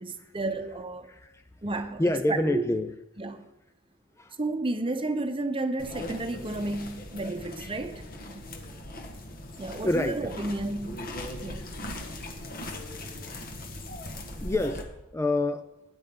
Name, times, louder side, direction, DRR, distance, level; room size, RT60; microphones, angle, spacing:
voice 1, 0.0-1.1 1.6-2.6 3.2-3.4 4.4-8.5 9.6-11.1 11.4-11.7, right 2 dB, 25° right, 0.9 m, -32 dB
voice 2, 1.1-1.4 2.0-2.9 4.2-4.3 9.8-10.3 14.4-14.8 15.1-15.6, left 1 dB, 15° left, 0.4 m, -27 dB
sound 1, 5.8-14.8, left 1 dB, 45° left, 1.6 m, -39 dB
17.0 x 9.8 x 3.8 m
head